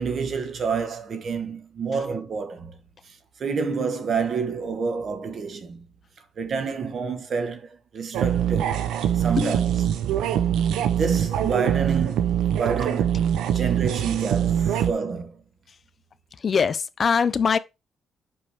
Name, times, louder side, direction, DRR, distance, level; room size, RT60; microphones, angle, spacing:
voice 1, 0.0-2.8 3.0-5.8 6.4-10.1 10.9-13.3 13.5-15.4, right 5 dB, 55° right, 1.3 m, -29 dB
sound 1, 8.1-14.9, right 9 dB, 85° right, 0.6 m, -23 dB
voice 2, 16.4-17.6, left 6 dB, 45° left, 0.5 m, -22 dB
5.4 x 5.3 x 3.5 m
cardioid pair, 90°, 0 cm